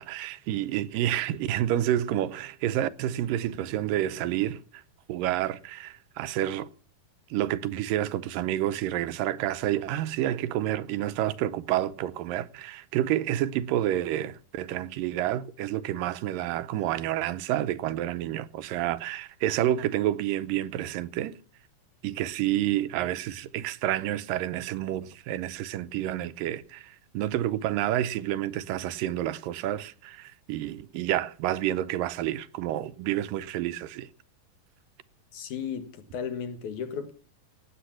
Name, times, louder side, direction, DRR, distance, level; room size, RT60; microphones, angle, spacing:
voice 1, 0.0-4.8 5.1-6.7 7.3-21.4 22.0-34.1, right 12 dB, 80° right, 2.4 m, -29 dB
voice 2, 35.3-37.1, left 7 dB, 65° left, 2.8 m, -35 dB
16.5 x 8.9 x 5.9 m
omnidirectional pair, 4.0 m